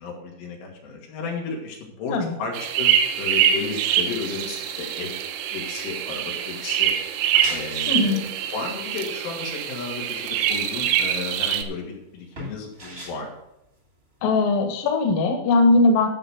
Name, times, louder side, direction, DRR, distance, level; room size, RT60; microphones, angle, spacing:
voice 1, 0.0-5.3 5.5-6.9 7.2-8.2 8.5-13.3, left 4 dB, 90° left, -1 dB, 5.0 m, -33 dB
sound 1, 2.5-11.6, right 9 dB, 80° right, 3.3 m, -25 dB
sound 2, 7.1-14.4, right 1 dB, 30° right, 1.1 m, -42 dB
voice 2, 7.9-8.2 14.2-16.1, left 2 dB, 60° left, 4 dB, 2.7 m, -19 dB
14.0 x 6.7 x 5.2 m, 0.86 s
omnidirectional pair, 5.4 m